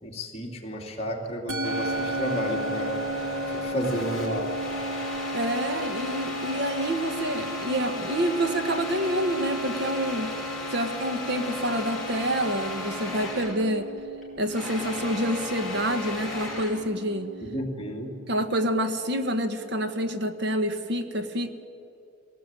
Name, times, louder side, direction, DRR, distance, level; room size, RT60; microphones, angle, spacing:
voice 1, 0.0-3.0 3.5-4.6 17.5-18.1, equal, 30° left, 0 dB, 2.8 m, -32 dB
Musical instrument, 1.5-20.0, right 1 dB, 80° right, 2.1 m, -36 dB
sound 1, 1.6-13.7 14.0-16.8, left 2 dB, ahead, 5.0 m, -35 dB
voice 2, 5.3-10.3 10.7-13.9 14.4-17.3 18.3-21.5, right 1 dB, 55° right, 8 dB, 1.3 m, -27 dB
21.5 x 18.0 x 9.0 m, 2.6 s
head